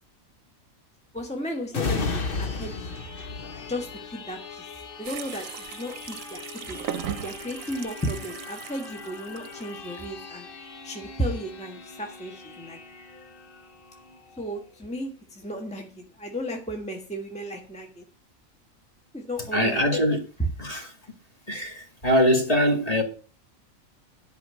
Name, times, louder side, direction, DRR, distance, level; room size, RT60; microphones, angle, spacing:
voice 1, 1.1-3.0 3.7-4.7 5.0-6.8 7.2-10.5 10.8-12.8 14.4-18.0 19.1-19.8, equal, 5° left, 1.4 m, -34 dB
sound 1, 1.7-15.0 15.5-15.6, left 4 dB, 45° left, 1.1 m, -37 dB
sound 2, 5.0-10.1, right 9 dB, 75° right, 1.1 m, -38 dB
voice 2, 19.5-20.2 20.6-20.9 21.5-23.0, equal, 25° left, 2.3 m, -22 dB
11.0 x 5.3 x 8.3 m
omnidirectional pair, 1.4 m